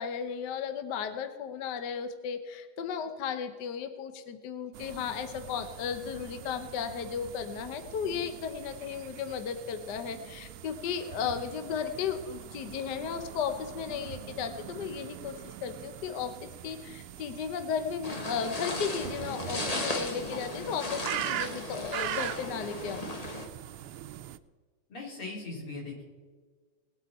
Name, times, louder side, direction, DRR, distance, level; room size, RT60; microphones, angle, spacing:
voice 1, 0.0-16.3 16.6-23.1, left 7 dB, 60° left, 9 dB, 1.3 m, -35 dB
sound 1, 4.7-24.4, right 13 dB, 90° right, 1.5 m, -42 dB
sound 2, 18.0-23.5, left 2 dB, 25° left, 0.9 m, -36 dB
voice 2, 24.9-26.1, left 3 dB, 85° left, -3 dB, 4.5 m, -39 dB
20.0 x 8.4 x 4.2 m, 1.5 s
omnidirectional pair, 2.4 m